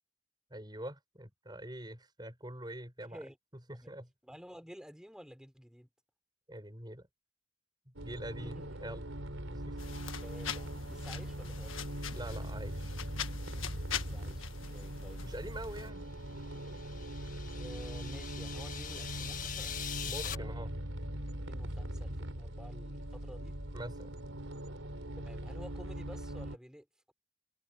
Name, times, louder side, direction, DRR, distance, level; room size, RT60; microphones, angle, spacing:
voice 1, 0.5-3.2 3.7-4.1 6.5-7.1 7.9-9.0 9.5-9.8 12.1-12.9 15.2-16.1 20.0-20.8 23.7-24.2, right 1 dB, 20° right, 6.6 m, -44 dB
voice 2, 4.2-5.9 8.4-8.8 10.2-11.7 13.9-14.5 14.7-15.2 17.5-19.8 20.2-20.7 21.5-23.6 25.2-27.1, equal, 5° right, 5.2 m, -51 dB
sound 1, 8.0-26.6, right 1 dB, 85° right, 4.6 m, -41 dB
sound 2, 9.8-15.9, left 9 dB, 85° left, 1.6 m, -43 dB
sound 3, 16.2-20.3, left 9 dB, 40° left, 1.4 m, -43 dB
head